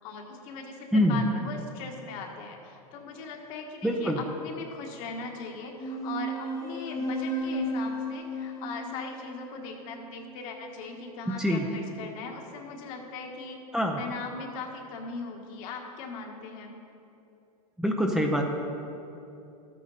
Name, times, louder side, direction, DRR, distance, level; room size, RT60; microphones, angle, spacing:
voice 1, 0.0-13.6 14.0-16.7, left 4 dB, 55° left, 1 dB, 1.7 m, -39 dB
voice 2, 3.8-4.2 11.4-11.6 13.7-14.0 17.8-18.4, equal, 5° right, 0 dB, 0.7 m, -24 dB
sound 1, 5.8-10.7, right 1 dB, 15° left, 1.3 m, -34 dB
12.5 x 8.5 x 4.2 m, 2.8 s
supercardioid pair, 135°, 20 cm